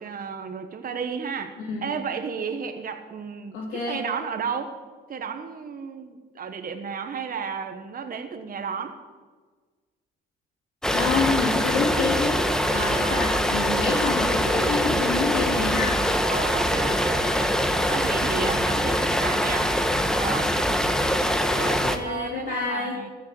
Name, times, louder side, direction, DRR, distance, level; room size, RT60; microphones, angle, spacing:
voice 1, 0.0-4.8 5.1-9.0 12.7-13.3 16.2-19.7 20.1-20.6 21.3-23.1, right 6 dB, 45° right, 6 dB, 1.1 m, -33 dB
voice 2, 3.5-4.0 10.9-16.0 21.8-22.9, left 4 dB, 90° left, -6 dB, 3.0 m, -27 dB
sound 1, 10.8-22.0, equal, 5° left, 1.1 m, -23 dB
14.0 x 6.5 x 7.7 m, 1.4 s
cardioid pair, 90°, 20 cm